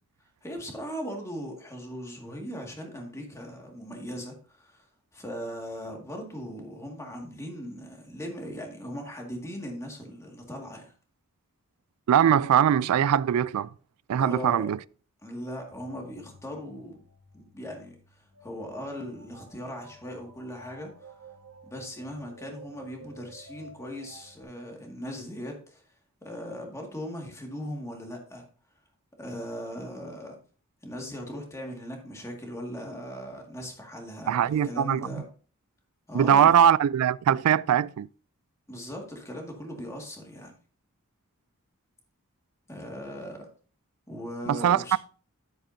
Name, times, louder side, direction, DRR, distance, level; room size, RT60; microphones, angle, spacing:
voice 1, 0.4-4.8 5.1-10.9 14.2-14.6 15.2-17.0 17.3-21.1 21.6-25.8 26.2-28.4 29.2-30.4 30.8-35.3 36.1-36.5 38.7-40.5 42.7-43.5 44.1-45.0, equal, 15° left, 2.0 m, -39 dB
voice 2, 12.1-13.7 14.1-14.8 34.3-35.2 36.1-38.1 44.5-45.0, right 9 dB, 85° right, 0.3 m, -21 dB
sound 1, 15.7-24.4, right 2 dB, 65° right, 1.5 m, -52 dB
10.5 x 8.5 x 2.7 m
head